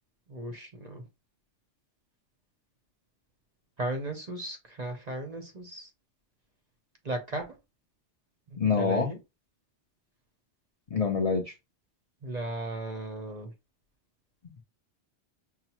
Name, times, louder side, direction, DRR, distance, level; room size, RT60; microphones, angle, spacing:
voice 1, 0.3-1.0 3.8-5.9 7.0-7.5 8.5-9.2 12.2-13.5, right 2 dB, 45° right, 4 dB, 0.7 m, -36 dB
voice 2, 8.6-9.1 10.9-11.5, left 5 dB, 40° left, 2 dB, 0.6 m, -26 dB
5.8 x 2.0 x 2.9 m, 0.24 s
omnidirectional pair, 1.2 m